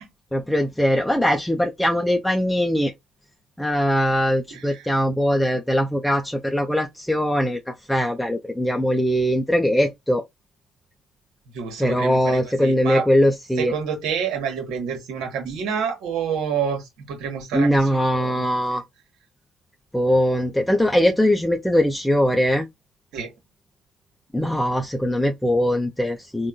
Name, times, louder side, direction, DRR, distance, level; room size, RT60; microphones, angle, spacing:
voice 1, 0.3-2.9 3.6-10.2 11.8-13.7 17.5-18.8 19.9-22.7 24.3-26.5, equal, 5° left, 0.5 m, -21 dB
voice 2, 4.5-4.8 11.5-13.0 13.6-16.8 17.1-17.8 18.1-18.8 23.1-23.3, right 7 dB, 75° right, 1.2 m, -28 dB
3.6 x 2.2 x 2.2 m
hypercardioid pair, 60°, 0 cm